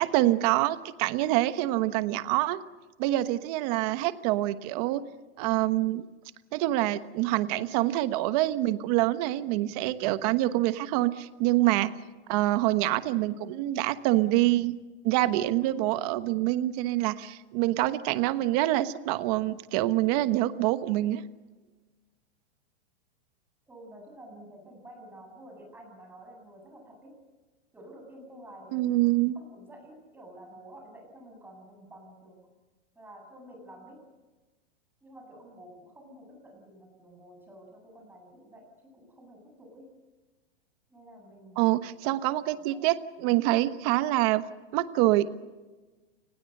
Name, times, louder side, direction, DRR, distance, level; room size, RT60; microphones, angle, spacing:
voice 1, 0.0-2.6 3.0-5.0 5.4-6.0 6.5-11.9 12.3-14.8 15.0-21.2 28.7-29.3 41.6-44.4 44.7-45.4, right 16 dB, 40° right, 12 dB, 1.2 m, -26 dB
voice 2, 23.7-27.1 27.7-29.0 29.3-32.4 32.9-34.0 35.0-39.9 40.9-41.6 42.0-42.3 42.7-42.9, right 1 dB, 5° right, 1 dB, 7.7 m, -50 dB
30.0 x 20.5 x 6.7 m, 1.2 s
supercardioid pair, 160°, 31 cm